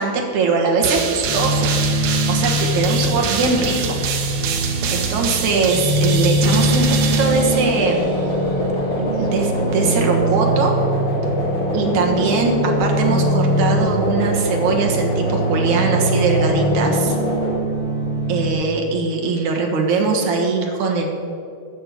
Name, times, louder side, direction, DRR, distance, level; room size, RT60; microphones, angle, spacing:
voice 1, 0.0-1.7 2.0-4.0 4.9-8.1 9.0-10.7 11.7-17.2 18.3-21.1, right 4 dB, 60° right, 1 dB, 2.5 m, -21 dB
sound 1, 0.8-8.1, right 6 dB, 80° right, 3.0 m, -25 dB
sound 2, 1.2-18.5, right 1 dB, 35° right, 3.6 m, -22 dB
sound 3, 7.2-17.5, left 1 dB, 30° left, 4.2 m, -25 dB
12.5 x 6.6 x 8.5 m, 2.4 s
omnidirectional pair, 4.5 m